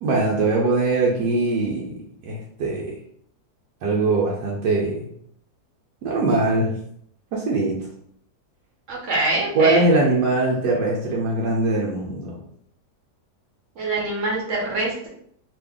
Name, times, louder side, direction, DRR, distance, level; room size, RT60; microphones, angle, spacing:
voice 1, 0.0-3.0 3.8-5.1 6.0-6.7 7.3-7.9 9.5-12.4, right 3 dB, 90° right, -4 dB, 1.3 m, -21 dB
voice 2, 8.9-9.8 13.8-15.1, right 2 dB, 50° right, -2 dB, 1.2 m, -24 dB
2.9 x 2.6 x 3.4 m, 0.67 s
omnidirectional pair, 1.8 m